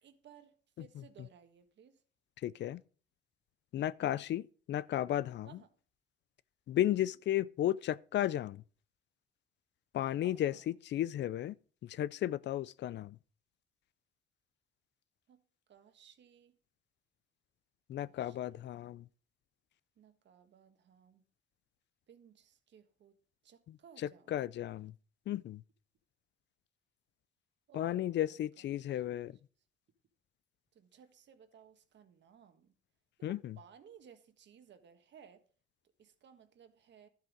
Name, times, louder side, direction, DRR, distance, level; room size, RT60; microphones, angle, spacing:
voice 1, 0.0-2.0 5.4-5.7 6.8-7.0 10.2-10.6 15.3-15.4 15.7-16.5 17.9-18.6 20.0-21.2 22.1-23.2 23.4-24.4 27.7-28.3 28.6-28.9 30.7-32.7 33.2-35.4 36.0-37.1, right 8 dB, 65° right, 1.6 m, -59 dB
voice 2, 2.4-2.8 3.7-5.6 6.7-8.6 9.9-11.6 11.8-13.2 17.9-19.1 23.7-24.9 25.3-25.6 27.7-29.4 33.2-33.6, left 12 dB, 65° left, 0.5 m, -34 dB
12.0 x 7.7 x 5.1 m
cardioid pair, 90°, 20 cm